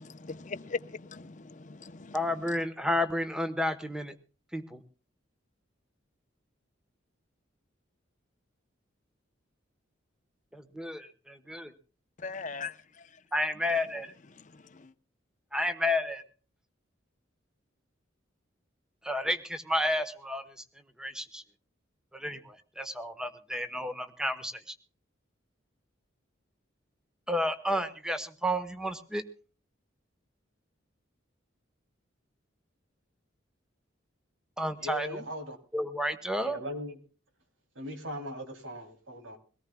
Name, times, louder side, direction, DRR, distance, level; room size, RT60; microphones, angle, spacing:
voice 1, 0.0-2.2 2.5-2.6 12.2-13.1 14.5-14.9, left 4 dB, 40° left, 0.7 m, -40 dB
voice 2, 2.1-4.1 4.5-4.8 10.5-11.7 13.3-14.1 15.5-16.2 19.0-20.4 21.0-21.4 22.1-24.7 27.3-29.2 34.6-35.1 35.7-36.6, left 1 dB, 5° right, 1.1 m, -31 dB
voice 3, 34.8-35.6 36.4-37.0 37.7-39.4, left 1 dB, 80° right, 3.2 m, -39 dB
22.5 x 18.0 x 2.2 m
head